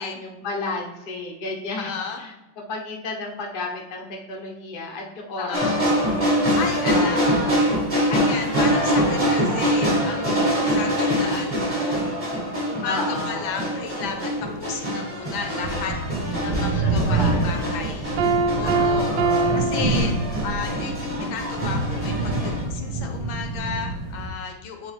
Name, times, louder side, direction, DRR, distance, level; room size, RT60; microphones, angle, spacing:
voice 1, 0.0-1.9 2.2-2.3 2.7-6.1 6.9-7.2 7.4-7.8 12.9-13.4 16.7-17.9 18.6-19.6, left 2 dB, 55° left, -1 dB, 0.5 m, -32 dB
voice 2, 1.8-2.2 5.4-5.8 6.5-7.6 8.1-12.1 12.7-16.0 16.4-18.1 18.6-19.1 19.5-24.9, left 6 dB, 70° left, 4 dB, 1.4 m, -33 dB
sound 1, 5.5-22.6, equal, 25° right, 0.8 m, -24 dB
sound 2, 14.0-14.1 14.5-14.6 15.3-24.3, right 2 dB, 90° right, 2.5 m, -27 dB
Piano, 18.2-20.7, right 3 dB, 70° right, 1.1 m, -24 dB
8.9 x 3.4 x 3.2 m, 1.0 s
omnidirectional pair, 2.4 m